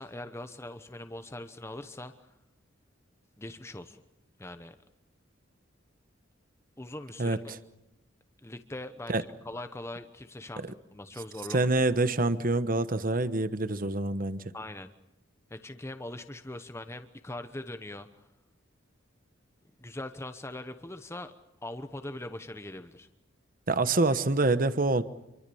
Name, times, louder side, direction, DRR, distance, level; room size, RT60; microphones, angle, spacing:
voice 1, 0.0-2.3 3.4-4.0 4.4-4.8 6.8-7.5 8.4-10.6 10.9-11.7 14.5-14.9 15.5-18.1 19.8-21.3 21.6-23.1, left 1 dB, 15° left, 8 dB, 1.0 m, -41 dB
voice 2, 11.5-14.4 23.7-25.0, right 2 dB, 45° right, 12 dB, 1.1 m, -26 dB
27.0 x 24.0 x 7.0 m, 0.87 s
head